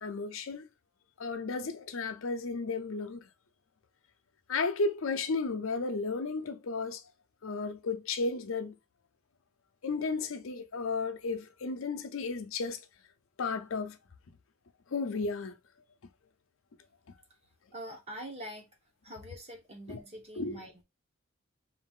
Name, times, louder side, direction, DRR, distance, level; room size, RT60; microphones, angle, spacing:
voice 1, 0.0-0.7 1.2-3.2 4.5-7.0 7.4-8.8 9.8-12.8 13.4-14.0 14.9-15.5 19.9-20.0 20.4-20.6, left 4 dB, 80° left, 0.6 m, -33 dB
voice 2, 17.7-18.7 19.0-20.8, equal, 30° right, 1.2 m, -44 dB
3.9 x 2.7 x 3.6 m
head